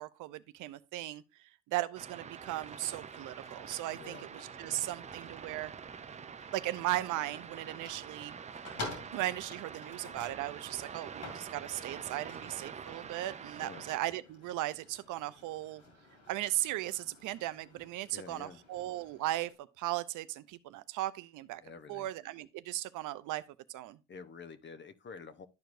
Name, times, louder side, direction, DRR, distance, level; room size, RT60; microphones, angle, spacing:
voice 1, 0.0-5.7 6.5-8.3 9.1-15.8 16.3-21.6 21.9-23.4 23.7-24.0, right 15 dB, 90° right, 0.5 m, -37 dB
sound 1, 1.9-14.0, right 7 dB, 25° right, 0.3 m, -46 dB
sound 2, 2.4-19.5, left 3 dB, 65° left, 2.7 m, -51 dB
voice 2, 3.9-4.3 4.6-4.9 13.6-13.8 18.1-18.6 21.6-22.1 24.1-25.5, left 5 dB, 40° left, 0.7 m, -49 dB
11.5 x 4.6 x 2.5 m
cardioid pair, 90°, 30 cm